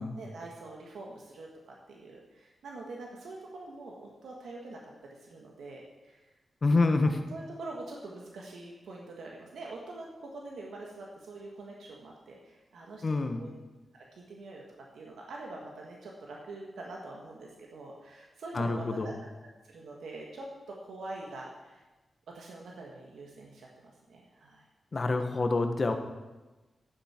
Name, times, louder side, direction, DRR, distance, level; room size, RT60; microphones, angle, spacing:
voice 1, 0.0-6.3 6.7-13.0 13.4-13.5 13.9-19.1 19.6-21.8 22.3-24.6, right 2 dB, 90° right, -2 dB, 1.5 m, -45 dB
voice 2, 6.6-7.2 13.0-13.4 18.5-19.1 24.9-25.9, left 3 dB, 40° left, 6 dB, 1.1 m, -27 dB
11.0 x 9.4 x 4.4 m, 1.2 s
cardioid pair, 90°, 0 cm